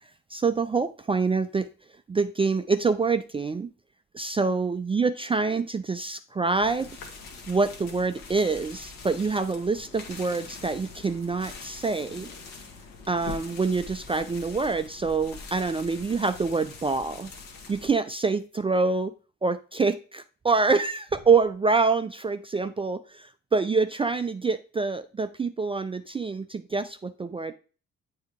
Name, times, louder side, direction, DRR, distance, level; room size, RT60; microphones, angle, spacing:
voice 1, 0.3-1.7 2.1-3.7 4.1-6.9 7.5-12.3 13.1-17.3 17.7-19.1 19.4-27.5, right 4 dB, 15° right, 10 dB, 0.3 m, -26 dB
sound 1, 6.5-17.9, left 4 dB, 60° left, 1.4 m, -43 dB
8.8 x 3.4 x 3.5 m, 0.36 s
figure-of-eight pair, 45°, 39 cm